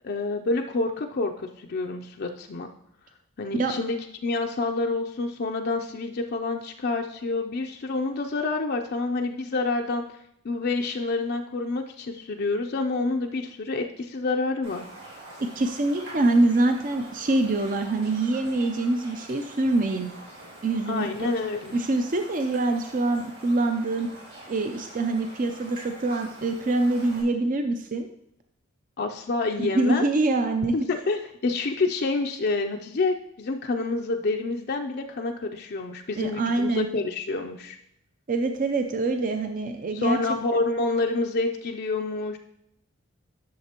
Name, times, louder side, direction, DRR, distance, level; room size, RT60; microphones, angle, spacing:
voice 1, 0.0-2.7 3.4-4.0 4.2-10.0 10.4-14.8 20.9-21.8 29.0-30.1 30.7-37.8 39.9-42.4, left 3 dB, 50° left, 2 dB, 0.5 m, -28 dB
Raindrop, 14.6-27.2, right 1 dB, 70° right, 3.7 m, -45 dB
voice 2, 15.4-20.1 20.6-21.3 21.7-24.1 24.5-28.1 29.6-31.0 36.2-36.9 38.3-40.2 40.5-40.6, right 2 dB, 40° right, 6 dB, 0.5 m, -25 dB
11.5 x 6.6 x 2.9 m, 0.80 s
head